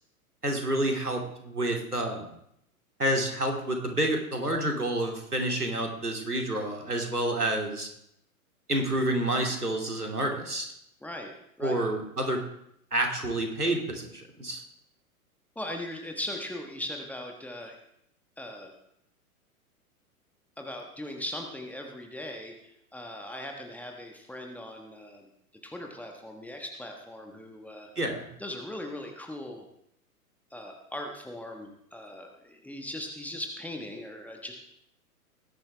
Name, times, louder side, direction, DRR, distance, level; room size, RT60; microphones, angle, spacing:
voice 1, 0.4-2.3 3.0-7.9 8.7-10.7 11.6-12.4 12.9-14.6 28.0-28.3, right 1 dB, 85° right, 2 dB, 2.6 m, -29 dB
voice 2, 11.0-11.3 11.6-11.8 15.5-17.8 18.4-18.7 20.6-25.3 25.6-27.9 28.4-29.7 30.5-34.5, left 1 dB, 5° left, 2 dB, 1.3 m, -39 dB
19.0 x 10.5 x 3.4 m, 0.76 s
figure-of-eight pair, 105°, 44 cm